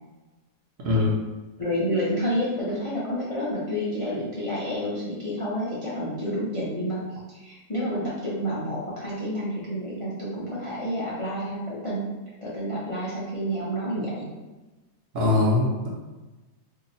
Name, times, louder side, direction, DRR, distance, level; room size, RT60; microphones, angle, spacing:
voice 1, 0.8-1.2 15.1-16.0, left 3 dB, 60° right, -4 dB, 1.0 m, -22 dB
voice 2, 1.6-7.0 7.3-12.1 12.4-14.3, equal, 40° left, -8 dB, 0.4 m, -29 dB
2.7 x 2.7 x 4.0 m, 1.1 s
omnidirectional pair, 1.7 m